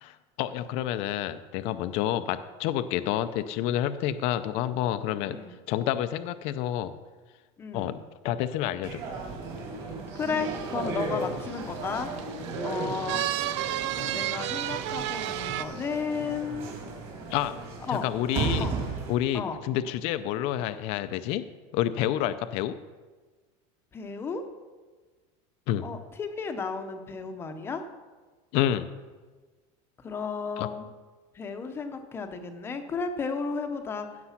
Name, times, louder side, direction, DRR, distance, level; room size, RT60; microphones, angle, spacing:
voice 1, 0.0-5.4 5.7-7.0 7.7-9.0 17.3-17.5 18.0-18.7 19.1-21.4 21.7-22.8 25.7-25.8 28.5-28.9 30.6-30.7, left 12 dB, 40° left, 11 dB, 0.5 m, -29 dB
voice 2, 5.3-5.6 7.6-7.9 10.1-12.1 12.6-13.2 14.1-16.7 17.9-18.0 18.6-18.8 19.3-19.6 23.9-24.4 25.8-27.8 30.0-30.9 31.3-34.1, left 5 dB, 15° left, 6 dB, 0.8 m, -33 dB
sound 1, 8.8-19.1, right 3 dB, 35° right, 2.7 m, -35 dB
sound 2, 10.4-15.6, right 13 dB, 70° right, 0.6 m, -33 dB
15.5 x 6.6 x 5.8 m, 1.4 s
cardioid pair, 180°, 16 cm